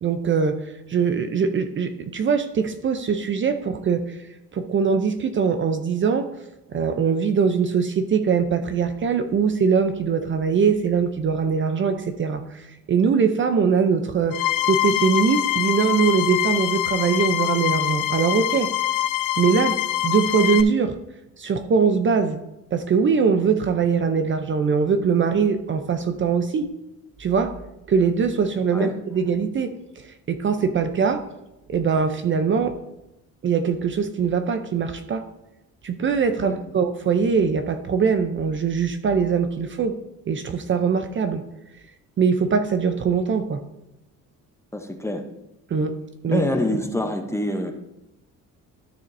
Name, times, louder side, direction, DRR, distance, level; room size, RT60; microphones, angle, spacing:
voice 1, 0.0-4.0 4.5-6.3 6.7-14.4 14.7-18.7 19.4-19.8 20.0-20.9 21.4-22.4 22.7-26.7 27.2-27.5 27.9-29.7 30.0-31.2 31.7-32.8 33.4-35.2 35.8-39.9 40.3-41.4 42.2-43.6 45.7-45.9 46.2-46.4, right 6 dB, 35° right, 8 dB, 0.6 m, -22 dB
sound 1, 14.3-20.6, left 14 dB, 85° left, 0.6 m, -24 dB
voice 2, 44.7-45.2 46.3-47.7, left 1 dB, 10° left, 5 dB, 0.7 m, -26 dB
13.0 x 6.3 x 2.6 m, 0.92 s
cardioid pair, 125°, 33 cm